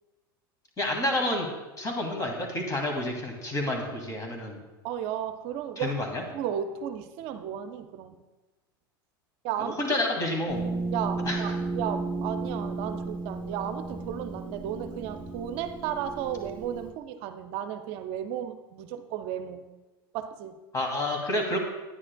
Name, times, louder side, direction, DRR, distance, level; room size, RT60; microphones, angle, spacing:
voice 1, 0.8-1.5 1.8-4.6 5.8-6.2 9.6-10.6 11.3-11.6 20.7-21.6, left 1 dB, 25° left, 2 dB, 2.1 m, -29 dB
voice 2, 4.8-5.9 6.3-8.2 9.4-9.8 10.9-19.7 20.1-20.6, right 9 dB, 55° right, 9 dB, 0.6 m, -34 dB
sound 1, 10.5-16.9, right 3 dB, 10° left, 1.2 m, -34 dB
9.8 x 9.7 x 2.3 m, 1.1 s
hypercardioid pair, 85°, 12 cm